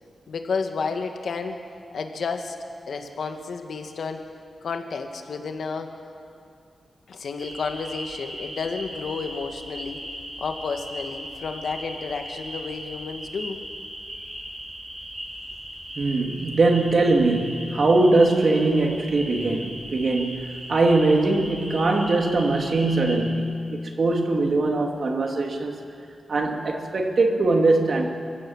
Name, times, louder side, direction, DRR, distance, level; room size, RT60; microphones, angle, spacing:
voice 1, 0.3-1.6 1.9-2.5 2.9-4.3 4.6-5.9 7.1-10.0 10.4-13.6, left 5 dB, 75° left, 5 dB, 1.8 m, -31 dB
sound 1, 7.4-23.1, equal, 25° right, 7.5 m, -38 dB
voice 2, 16.0-25.8 26.3-28.1, right 2 dB, 50° right, 2 dB, 2.4 m, -21 dB
28.5 x 16.0 x 7.3 m, 2.4 s
wide cardioid pair, 135°, 0 cm